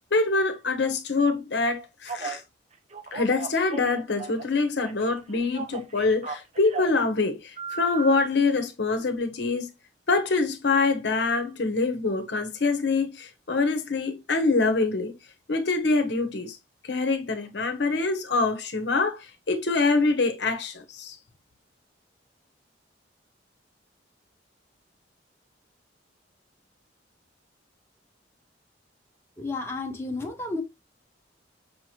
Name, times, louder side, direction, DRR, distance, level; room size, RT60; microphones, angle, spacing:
voice 1, 0.1-2.4 3.1-9.7 10.1-15.1 15.5-16.6 16.8-19.2 19.5-21.2, left 3 dB, 60° left, 0.8 m, -25 dB
Telephone, 2.1-2.4 2.9-4.6 4.8-7.0 7.6-8.3, right 5 dB, 35° right, 0.5 m, -36 dB
voice 2, 29.4-30.6, left 2 dB, 15° left, 0.7 m, -32 dB
5.6 x 2.9 x 2.8 m
head